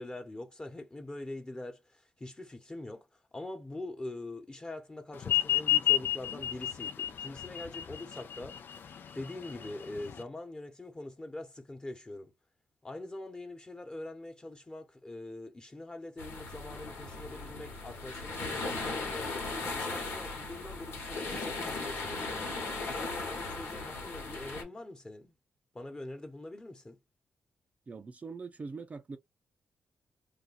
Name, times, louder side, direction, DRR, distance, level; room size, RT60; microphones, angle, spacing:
voice 1, 0.0-3.0 3.3-8.6 9.1-12.3 12.8-19.3 19.6-22.3 22.9-25.3 25.7-27.0, left 2 dB, 20° left, 1.0 m, -43 dB
sound 1, 5.2-10.2, left 15 dB, 60° left, 0.4 m, -30 dB
sound 2, 16.2-24.6, left 3 dB, 75° left, 1.2 m, -37 dB
voice 2, 27.9-29.2, right 4 dB, 35° right, 0.5 m, -42 dB
2.6 x 2.3 x 4.0 m
cardioid pair, 70°, 4 cm